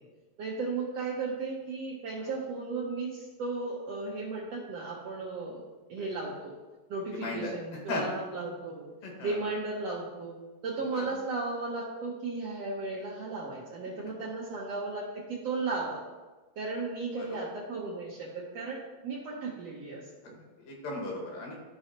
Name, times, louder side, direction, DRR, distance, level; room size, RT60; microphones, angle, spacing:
voice 1, 0.4-5.6 5.9-6.5 6.9-8.9 9.2-10.3 10.6-16.0 16.6-20.4, right 3 dB, 70° right, -4 dB, 1.6 m, -35 dB
voice 2, 7.1-7.5 7.9-8.0 9.0-9.4 10.9-11.0 17.2-17.3 20.6-21.6, left 2 dB, 75° left, -1 dB, 3.2 m, -36 dB
13.5 x 4.6 x 2.9 m, 1.2 s
omnidirectional pair, 3.9 m